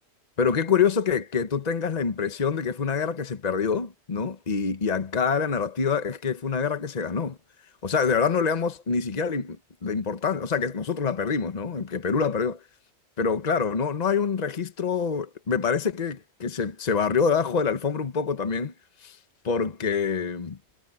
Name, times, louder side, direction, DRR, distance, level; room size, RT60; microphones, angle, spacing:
voice 1, 0.4-7.4 7.8-9.6 9.8-12.6 13.2-18.7 19.0-19.2 19.4-20.6, left 6 dB, 40° left, 1.1 m, -26 dB
omnidirectional pair, 1.1 m